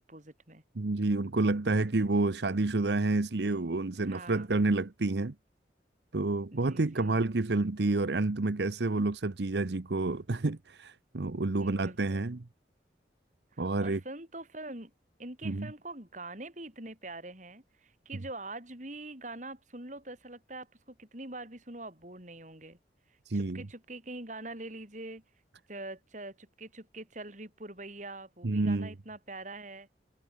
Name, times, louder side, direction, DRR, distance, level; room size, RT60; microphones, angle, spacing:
voice 1, 0.0-0.6 3.9-4.5 6.5-7.2 11.6-12.2 13.5-14.9 15.2-22.8 23.3-25.2 25.7-29.9, right 2 dB, 45° right, 6.0 m, -44 dB
voice 2, 0.8-5.3 6.1-12.4 13.6-14.0 15.4-15.7 23.3-23.7 28.4-28.9, right 2 dB, 70° right, 0.9 m, -29 dB
head